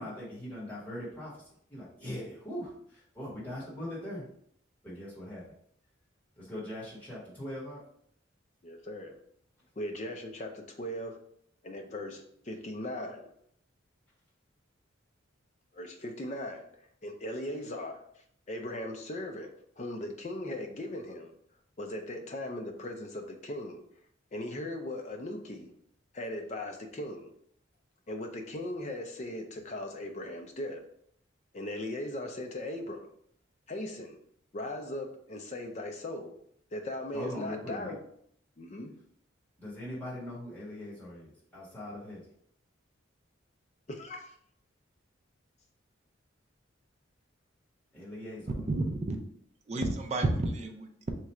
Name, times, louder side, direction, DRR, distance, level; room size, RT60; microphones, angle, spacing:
voice 1, 0.0-4.2 4.8-5.4 6.4-7.8 37.1-37.9 39.6-42.2 47.9-48.6, left 1 dB, 10° left, -9 dB, 1.5 m, -41 dB
voice 2, 8.6-9.2 9.8-11.2 11.6-13.3 15.7-16.7 17.0-21.3 21.8-23.8 24.3-25.7 26.1-27.3 28.1-30.8 31.5-33.1 33.7-34.2 34.5-36.4 36.7-38.0 38.6-38.9 43.9-44.4, left 1 dB, 35° left, 4 dB, 0.5 m, -38 dB
voice 3, 48.7-49.2 49.7-51.1, right 2 dB, 35° right, 5 dB, 0.4 m, -31 dB
3.1 x 2.4 x 4.2 m, 0.68 s
head